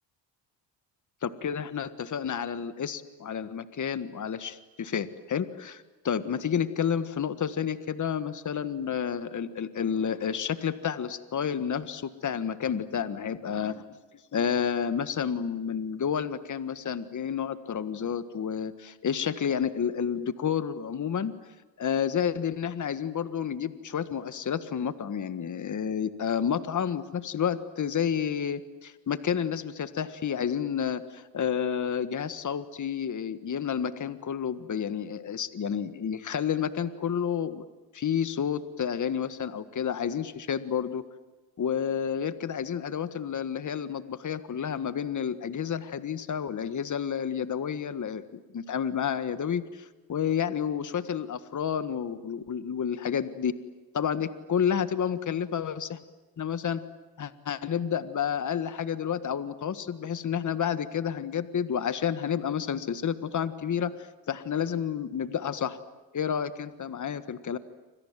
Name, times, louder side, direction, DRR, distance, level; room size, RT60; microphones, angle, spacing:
voice 1, 1.2-13.8 14.3-21.3 21.8-37.6 37.9-41.0 41.6-53.5 53.9-56.0 56.4-56.8 57.2-65.8 66.1-67.6, left 8 dB, 40° left, 12 dB, 1.6 m, -30 dB
29.5 x 26.0 x 7.6 m, 1.2 s
cardioid pair, 95°, 43 cm